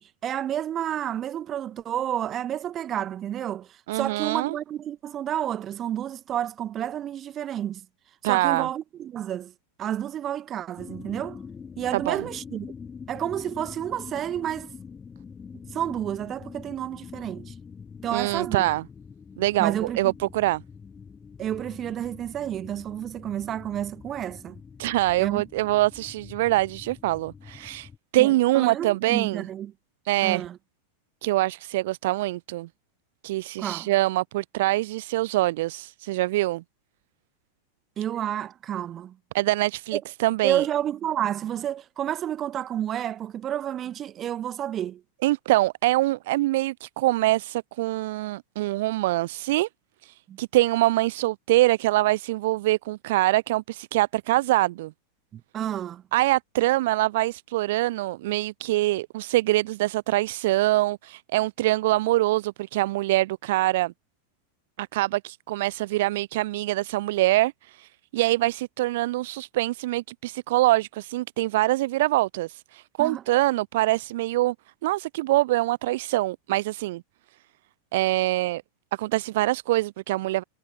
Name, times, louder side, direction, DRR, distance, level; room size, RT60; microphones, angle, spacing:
voice 1, 0.0-7.9 8.2-9.5 9.8-11.4 11.8-12.7 13.1-14.7 15.7-17.5 18.0-18.7 19.6-20.1 21.4-24.6 25.2-25.4 28.2-29.7 30.2-30.6 33.6-33.9 38.0-39.2 39.9-40.0 40.4-45.0 50.3-50.4 55.3-56.0 73.0-73.2, right 10 dB, 30° right, 1.6 m, -30 dB
voice 2, 3.9-4.5 8.2-8.7 11.9-12.2 18.1-18.8 19.4-20.6 24.8-29.4 30.1-30.4 31.2-32.7 33.2-36.6 39.3-40.6 45.2-49.7 50.0-54.9 56.1-63.9 64.8-74.5 74.8-77.0 77.9-78.6 79.0-80.4, right 17 dB, 55° right, 0.5 m, -24 dB
sound 1, 10.8-28.0, left 6 dB, 20° left, 2.7 m, -44 dB
figure-of-eight pair, 90°, 0 cm